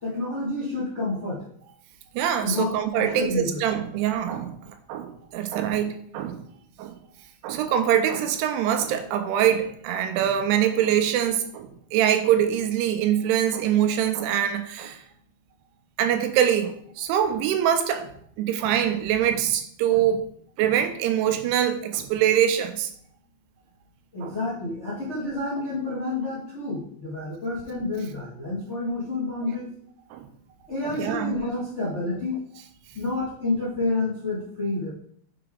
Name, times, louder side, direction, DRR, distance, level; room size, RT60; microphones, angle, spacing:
voice 1, 0.0-1.4 2.4-3.6 24.1-29.7 30.7-32.4 32.9-34.9, left 2 dB, 75° left, -6 dB, 0.6 m, -29 dB
voice 2, 2.1-6.4 6.8-7.0 7.4-15.0 16.0-18.1 18.4-20.2 20.6-22.9 24.2-24.4 30.1-30.3 30.8-31.4, right 10 dB, 90° right, 7 dB, 2.7 m, -24 dB
6.9 x 4.7 x 3.7 m, 0.64 s
omnidirectional pair, 4.8 m